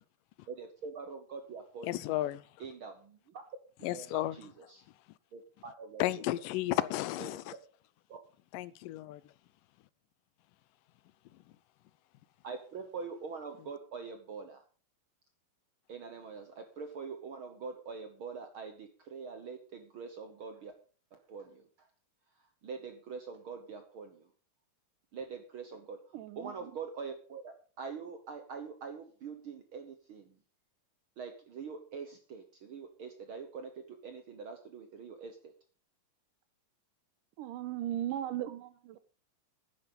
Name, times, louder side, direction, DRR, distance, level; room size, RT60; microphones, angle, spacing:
voice 1, 0.5-1.9 2.6-3.4 3.8-4.8 5.3-6.2 7.2-7.3 8.1-8.2 12.4-14.6 15.9-20.7 21.1-21.9 22.6-24.3 25.1-26.0 26.4-30.4 31.2-35.5, right 5 dB, 65° right, 1.3 m, -44 dB
voice 2, 1.8-2.4 3.8-4.4 6.0-7.5 8.5-9.2, left 15 dB, 85° left, 2.3 m, -33 dB
voice 3, 26.1-26.7 37.4-39.0, right 12 dB, 85° right, 2.4 m, -37 dB
10.5 x 10.0 x 5.3 m
omnidirectional pair, 3.8 m